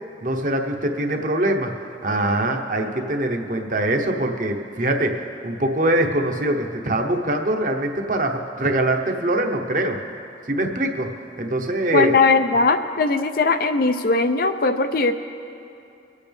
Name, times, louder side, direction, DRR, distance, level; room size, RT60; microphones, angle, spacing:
voice 1, 0.2-1.7 2.0-10.0 10.5-11.1 11.4-12.1, right 1 dB, 45° right, 3 dB, 0.9 m, -23 dB
voice 2, 11.9-15.1, left 3 dB, 55° left, 8 dB, 0.5 m, -19 dB
24.0 x 8.4 x 3.5 m, 2.7 s
head